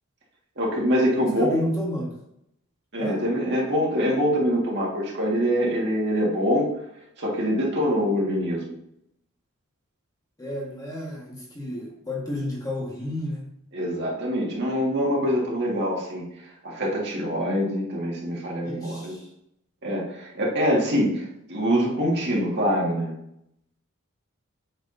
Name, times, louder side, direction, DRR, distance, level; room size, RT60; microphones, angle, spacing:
voice 1, 0.6-1.6 2.9-6.7 7.2-8.7 13.7-19.2 19.8-23.1, equal, 50° right, -3 dB, 1.9 m, -24 dB
voice 2, 1.1-2.1 2.9-3.2 10.4-13.4 18.6-19.2, left 1 dB, 15° left, -3 dB, 1.7 m, -32 dB
8.2 x 6.1 x 2.7 m, 0.78 s
head